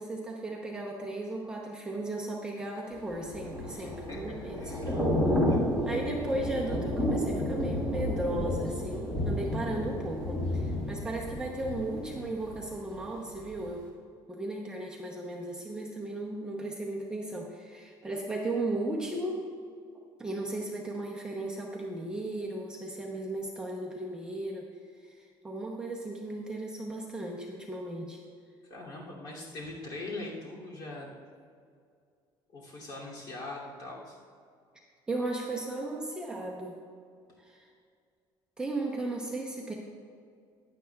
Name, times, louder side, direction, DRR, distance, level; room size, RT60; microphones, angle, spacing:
voice 1, 0.0-5.0 5.9-13.9 14.3-19.5 20.2-24.7 25.0-28.2 35.1-36.8 37.4-37.7 38.6-39.7, right 2 dB, 10° right, -2 dB, 0.8 m, -36 dB
Thunder / Rain, 3.1-13.0 13.3-13.6, left 1 dB, 10° left, 2.0 m, -31 dB
voice 2, 3.7-5.0 5.5-5.6 28.6-31.1 32.5-34.2, left 2 dB, 45° left, -4 dB, 2.6 m, -42 dB
16.0 x 10.5 x 2.3 m, 2.2 s
cardioid pair, 175°, 10 cm